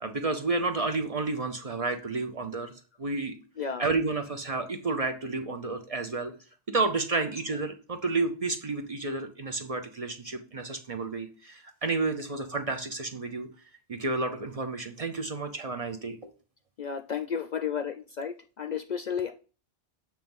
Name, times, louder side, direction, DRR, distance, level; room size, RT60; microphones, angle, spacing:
voice 1, 0.0-2.7 3.0-3.3 3.8-6.3 6.7-13.5 13.9-16.3, right 3 dB, 40° right, 6 dB, 0.7 m, -31 dB
voice 2, 16.8-19.3, left 7 dB, 55° left, 7 dB, 0.5 m, -32 dB
7.5 x 3.1 x 5.3 m, 0.37 s
omnidirectional pair, 1.1 m